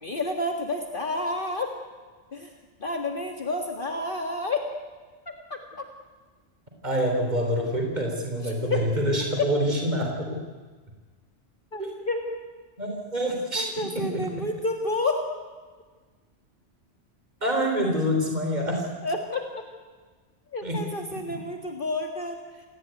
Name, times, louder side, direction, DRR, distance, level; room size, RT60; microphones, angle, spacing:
voice 1, 0.0-1.7 2.3-2.5 2.8-4.7 5.3-5.9 8.4-8.9 11.7-12.2 13.5-15.2 17.9-18.2 19.0-19.6 20.5-22.4, left 2 dB, 45° left, 3 dB, 2.0 m, -30 dB
voice 2, 6.8-10.4 11.8-11.9 12.8-13.7 17.4-18.9 20.6-20.8, equal, 35° right, 2 dB, 4.0 m, -26 dB
28.0 x 18.5 x 9.3 m, 1.4 s
omnidirectional pair, 1.2 m